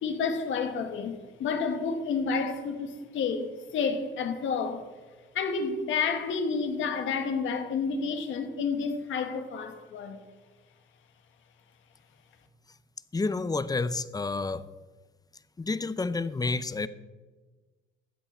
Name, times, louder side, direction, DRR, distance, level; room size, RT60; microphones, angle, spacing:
voice 1, 0.0-4.9 5.3-10.2, left 5 dB, 75° left, 1.4 m, -30 dB
voice 2, 13.1-14.6 15.6-16.9, left 3 dB, 20° left, 0.5 m, -29 dB
13.0 x 8.4 x 4.3 m
cardioid pair, 90°, 20 cm